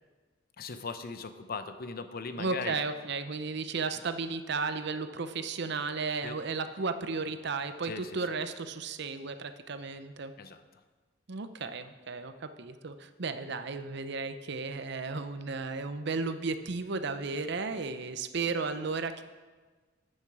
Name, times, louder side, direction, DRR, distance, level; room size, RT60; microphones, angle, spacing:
voice 1, 0.6-2.8 6.2-6.4 7.8-8.1 10.4-10.6, left 4 dB, 50° left, 10 dB, 0.7 m, -39 dB
voice 2, 2.4-10.3 11.3-19.2, right 4 dB, 60° right, 10 dB, 0.7 m, -34 dB
11.0 x 8.9 x 4.8 m, 1.3 s
head